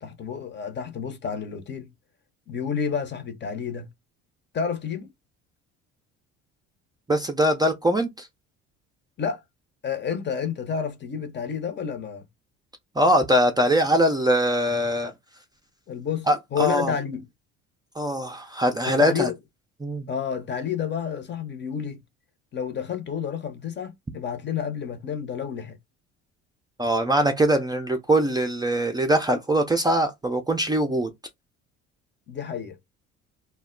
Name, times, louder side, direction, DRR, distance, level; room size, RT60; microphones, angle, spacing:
voice 1, 0.0-1.9 2.5-3.9 4.5-5.1 9.2-9.4 9.8-12.3 15.9-17.3 18.9-19.4 20.1-22.0 22.5-25.8 32.3-32.8, left 7 dB, 35° left, 0.8 m, -30 dB
voice 2, 7.1-8.3 13.0-15.1 16.3-16.9 18.0-19.3 19.8-20.1 26.8-31.1, right 1 dB, 15° right, 0.5 m, -22 dB
2.2 x 2.0 x 3.7 m
supercardioid pair, 75°, 30 cm